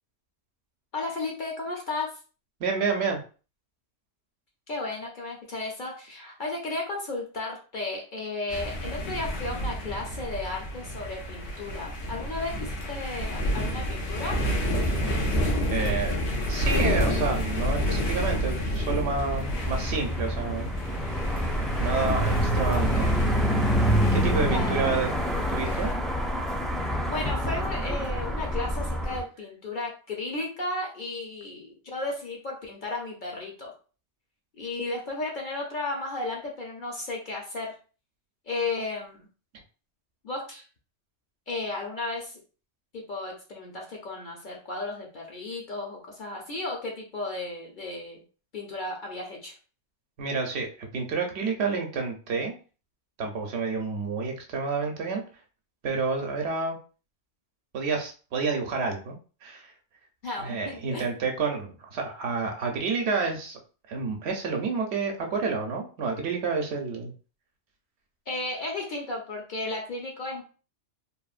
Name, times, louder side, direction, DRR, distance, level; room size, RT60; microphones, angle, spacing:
voice 1, 0.9-2.2 4.7-14.4 24.5-24.9 27.1-33.7 34.6-37.7 38.5-39.3 40.2-40.6 41.5-42.4 42.9-48.2 48.5-49.6 60.2-61.0 68.3-70.4, left 2 dB, 55° left, -1 dB, 0.6 m, -34 dB
voice 2, 2.6-3.2 15.7-16.2 16.5-20.7 21.8-23.1 24.1-25.1 25.5-25.9 50.2-52.5 53.2-55.2 55.8-56.8 57.7-59.2 59.4-59.7 60.4-63.6 63.9-67.1, right 4 dB, 70° right, 2 dB, 0.8 m, -29 dB
sound 1, 8.5-25.9, equal, 75° left, 1.0 m, -29 dB
sound 2, 19.1-29.2, equal, ahead, 0.4 m, -27 dB
3.0 x 2.1 x 2.4 m, 0.37 s
omnidirectional pair, 1.2 m